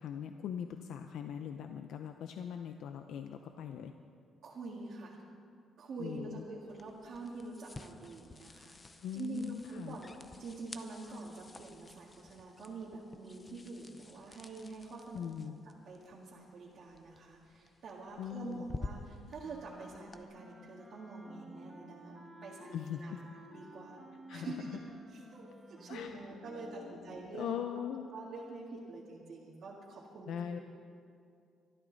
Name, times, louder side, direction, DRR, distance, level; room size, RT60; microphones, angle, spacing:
voice 1, 0.0-3.9 6.0-6.4 9.0-10.0 15.1-15.6 18.2-18.7 22.7-23.2 24.3-24.5 25.9-28.1 30.3-30.6, left 8 dB, 70° left, 6 dB, 0.6 m, -41 dB
voice 2, 4.4-5.2 5.8-15.3 15.9-23.1 23.5-24.0 24.3-24.7 25.1-27.6 28.1-30.6, right 3 dB, 50° right, -5 dB, 2.0 m, -46 dB
sound 1, 6.7-20.2, left 3 dB, 20° left, 0.6 m, -51 dB
sound 2, 19.4-26.8, right 1 dB, 10° right, 1.6 m, -54 dB
24.0 x 12.5 x 4.0 m, 2.4 s
cardioid pair, 165°, 0 cm